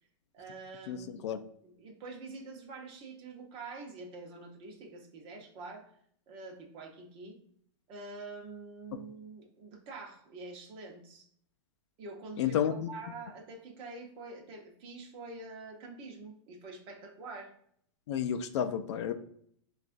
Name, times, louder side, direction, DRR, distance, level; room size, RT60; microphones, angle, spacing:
voice 1, 0.3-5.8 6.3-7.4 7.9-11.3 12.0-17.5, right 3 dB, 35° right, 2 dB, 0.9 m, -46 dB
voice 2, 0.9-1.4 12.4-12.9 18.1-19.1, left 9 dB, 65° left, 9 dB, 0.4 m, -31 dB
6.2 x 2.4 x 2.6 m, 0.65 s
supercardioid pair, 145°, 16 cm